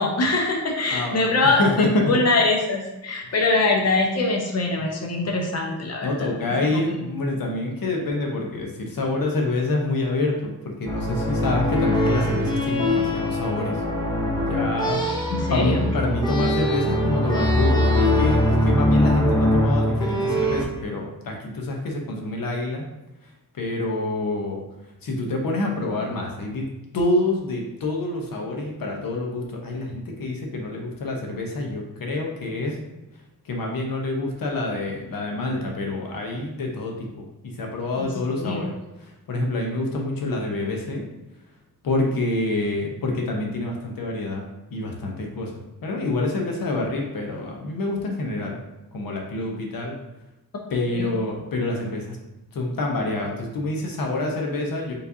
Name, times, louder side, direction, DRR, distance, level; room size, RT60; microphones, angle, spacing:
voice 1, 0.0-6.3 6.6-7.0 15.3-15.9 38.0-38.6 50.9-51.1, left 2 dB, 45° left, 1 dB, 0.8 m, -23 dB
voice 2, 0.9-2.1 3.2-3.3 6.0-13.8 14.5-22.8 23.5-24.6 25.0-26.7 26.9-32.8 33.4-38.7 39.0-41.0 41.8-45.5 45.8-48.6 48.9-50.0 50.7-52.2 52.5-54.9, left 2 dB, 75° left, 1 dB, 0.9 m, -27 dB
sound 1, 10.9-20.6, left 1 dB, 15° left, 0.5 m, -22 dB
4.7 x 3.2 x 2.6 m, 0.98 s
wide cardioid pair, 165°, 34 cm